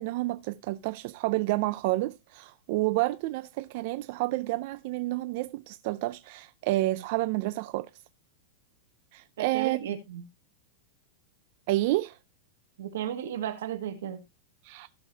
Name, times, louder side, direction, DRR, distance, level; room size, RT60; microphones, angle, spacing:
voice 1, 0.0-7.9 9.1-9.8 11.7-12.2 14.6-14.9, right 18 dB, 45° right, 0.4 m, -29 dB
voice 2, 9.4-10.2 12.8-14.2, right 10 dB, 85° right, 2.0 m, -34 dB
15.5 x 6.7 x 2.7 m
supercardioid pair, 165°, 0 cm